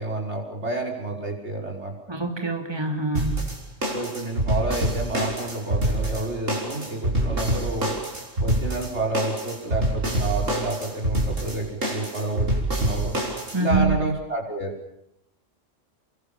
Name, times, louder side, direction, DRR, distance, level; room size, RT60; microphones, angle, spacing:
voice 1, 0.0-1.9 3.9-7.9 8.4-12.5 12.8-13.2 13.6-14.7, right 2 dB, 60° right, 0 dB, 6.2 m, -29 dB
voice 2, 2.1-3.5 13.5-14.0, right 3 dB, 20° right, 4 dB, 3.1 m, -25 dB
sound 1, 3.2-13.8, right 1 dB, 85° right, 6.3 m, -26 dB
29.0 x 23.5 x 7.3 m, 0.79 s
omnidirectional pair, 1.3 m